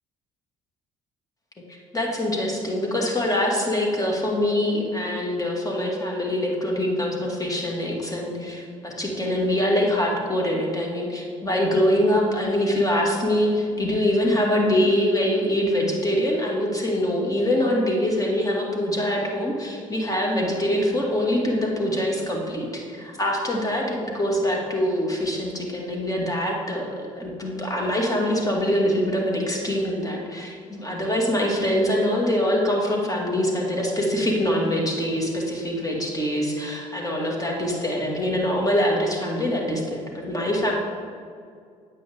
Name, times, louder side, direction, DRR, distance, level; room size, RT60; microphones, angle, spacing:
voice 1, 1.7-40.7, left 1 dB, 20° left, -1 dB, 2.4 m, -24 dB
9.2 x 8.0 x 3.8 m, 2.2 s
hypercardioid pair, 60°, 16 cm